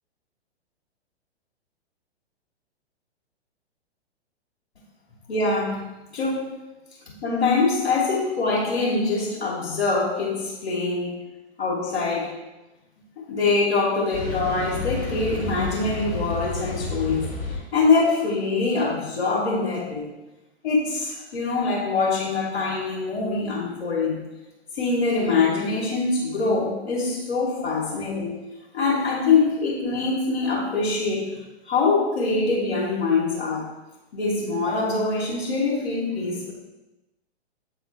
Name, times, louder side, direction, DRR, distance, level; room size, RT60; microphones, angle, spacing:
voice 1, 5.3-5.8 6.1-6.6 7.1-11.2 11.6-12.3 13.3-17.3 17.7-20.1 20.6-24.2 24.7-28.4 28.7-31.3 31.7-33.7 34.1-36.5, left 3 dB, 65° left, -7 dB, 1.9 m, -24 dB
sound 1, 14.1-17.6, left 3 dB, 30° left, 2.0 m, -30 dB
8.5 x 3.7 x 3.4 m, 1.0 s
figure-of-eight pair, 115°, 33 cm